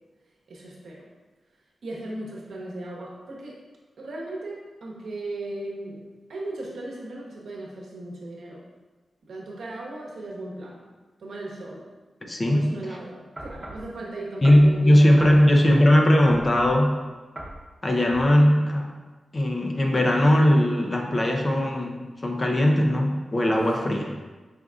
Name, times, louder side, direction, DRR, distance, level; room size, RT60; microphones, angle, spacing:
voice 1, 0.5-1.1 1.8-3.6 4.0-8.6 9.2-10.8 11.2-11.9 12.4-15.5, right 2 dB, 80° right, -2 dB, 0.9 m, -37 dB
voice 2, 12.2-12.7 14.4-17.0 17.8-18.9 19.3-24.2, left 1 dB, 25° left, 1 dB, 0.5 m, -19 dB
sound 1, 13.4-13.9 14.4-14.7 15.2-15.4 16.3-16.8 17.4-17.6 18.1-18.3, right 1 dB, 15° right, 0.8 m, -38 dB
5.0 x 3.7 x 2.3 m, 1.3 s
wide cardioid pair, 140°, 0 cm